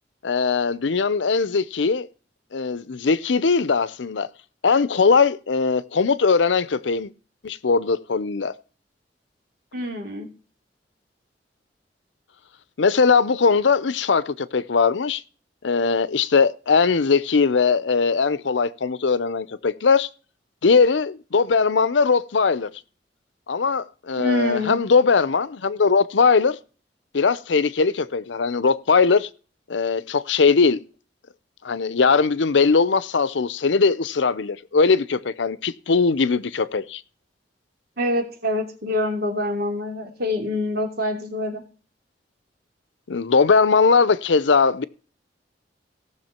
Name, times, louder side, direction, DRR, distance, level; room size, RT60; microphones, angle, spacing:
voice 1, 0.2-2.1 2.5-4.3 4.6-7.1 7.4-8.5 12.8-15.2 15.6-20.1 20.6-22.7 23.5-26.6 27.1-29.3 29.7-30.8 31.6-37.0 43.1-44.8, left 5 dB, 90° left, 0.6 m, -20 dB
voice 2, 9.7-10.3 24.2-24.8 38.0-41.6, left 1 dB, 60° right, 2.9 m, -25 dB
18.0 x 6.3 x 4.4 m
head